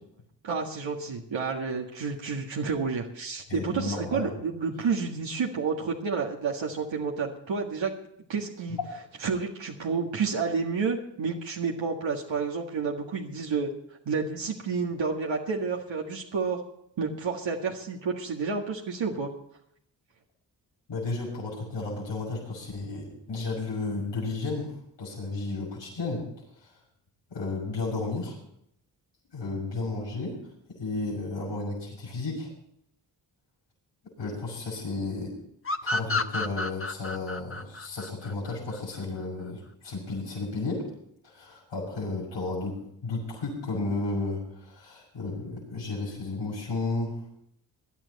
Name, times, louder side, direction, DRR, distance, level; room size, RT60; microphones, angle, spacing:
voice 1, 0.4-7.9 8.3-8.8 9.2-13.7 14.1-16.6 17.0-19.3, right 5 dB, 85° right, -1 dB, 1.9 m, -30 dB
voice 2, 3.5-4.3 20.9-26.3 26.6-26.7 27.3-28.4 29.3-30.4 30.7-32.5 34.2-35.3 35.8-40.9 41.2-47.2, left 3 dB, 75° left, -5 dB, 6.6 m, -33 dB
sound 1, 35.6-39.0, left 2 dB, 30° left, 1.1 m, -31 dB
19.5 x 11.0 x 4.1 m, 0.71 s
cardioid pair, 60°, 44 cm